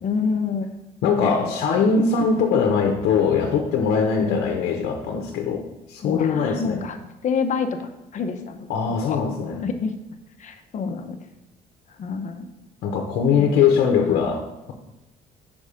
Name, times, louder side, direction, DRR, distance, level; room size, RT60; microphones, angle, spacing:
voice 1, 0.0-0.7 1.2-1.6 4.1-4.5 6.0-7.0 7.2-9.2 9.6-9.9 10.4-11.2 12.0-12.5 13.4-13.5 14.1-14.3, left 5 dB, 45° left, 6 dB, 0.7 m, -28 dB
voice 2, 1.0-6.8 8.7-9.6 12.8-14.4, left 6 dB, 80° left, 3 dB, 0.8 m, -21 dB
5.4 x 5.2 x 4.9 m, 0.96 s
cardioid pair, 110°, 17 cm